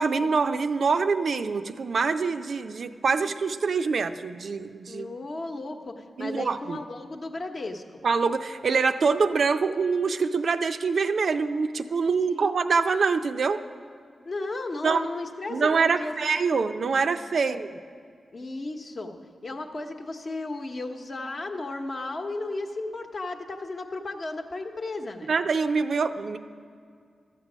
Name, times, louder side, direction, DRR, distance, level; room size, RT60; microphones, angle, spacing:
voice 1, 0.0-5.1 6.2-6.8 8.0-13.6 14.8-15.0 15.5-17.7 25.3-26.4, right 5 dB, 60° right, 9 dB, 0.4 m, -25 dB
voice 2, 4.9-8.0 12.3-12.6 14.2-16.1 17.4-17.6 18.3-25.3, left 2 dB, 45° left, 3 dB, 0.9 m, -35 dB
13.5 x 7.5 x 6.1 m, 2.2 s
wide cardioid pair, 90°, 0 cm